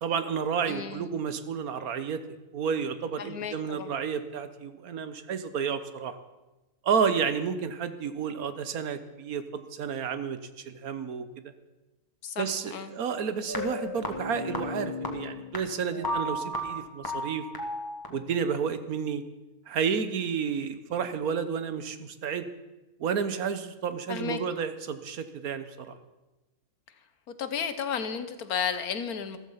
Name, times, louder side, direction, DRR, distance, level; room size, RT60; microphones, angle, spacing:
voice 1, 0.0-2.2 2.5-6.2 6.8-11.3 12.4-17.4 18.1-19.2 19.7-22.5 23.0-26.0, right 6 dB, 80° right, 11 dB, 1.5 m, -31 dB
voice 2, 0.7-1.2 3.2-3.9 12.2-12.9 24.1-24.4 27.4-29.4, left 7 dB, 90° left, 11 dB, 1.6 m, -33 dB
sound 1, 13.5-18.6, left 1 dB, 15° left, 1.8 m, -34 dB
14.5 x 14.0 x 5.7 m, 1.1 s
omnidirectional pair, 1.5 m